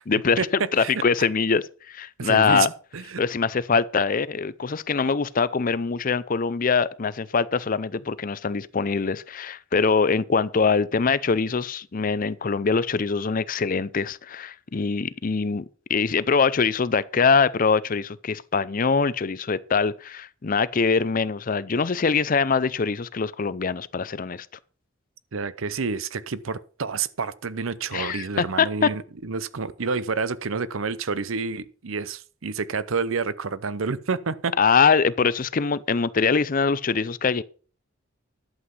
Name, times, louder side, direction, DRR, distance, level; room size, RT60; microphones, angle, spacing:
voice 1, 0.1-2.7 3.2-24.5 27.9-28.9 34.6-37.4, left 5 dB, 45° left, 0.5 m, -23 dB
voice 2, 2.2-2.7 2.9-3.2 25.3-34.5, right 5 dB, 85° right, 0.7 m, -29 dB
11.5 x 7.9 x 5.4 m
head